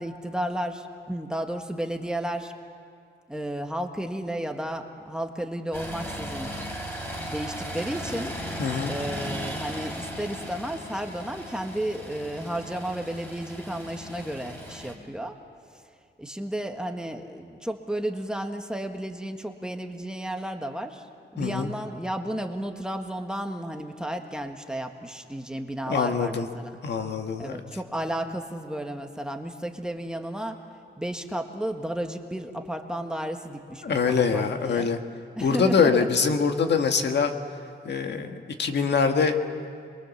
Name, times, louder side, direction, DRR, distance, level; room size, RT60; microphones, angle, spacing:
voice 1, 0.0-2.5 3.3-6.5 7.3-8.3 8.9-15.4 16.2-21.0 21.3-26.8 27.4-30.6 31.0-34.9 35.4-36.1, right 1 dB, 5° right, 4 dB, 1.6 m, -33 dB
sound 1, 5.7-14.9, equal, 10° left, 4.7 m, -36 dB
voice 2, 8.6-8.9 21.4-21.7 25.9-26.5 26.8-27.5 33.8-35.0 35.4-37.3 37.8-39.4, left 5 dB, 65° left, 5 dB, 1.6 m, -24 dB
28.0 x 23.0 x 7.2 m, 2.3 s
wide cardioid pair, 120°, 19 cm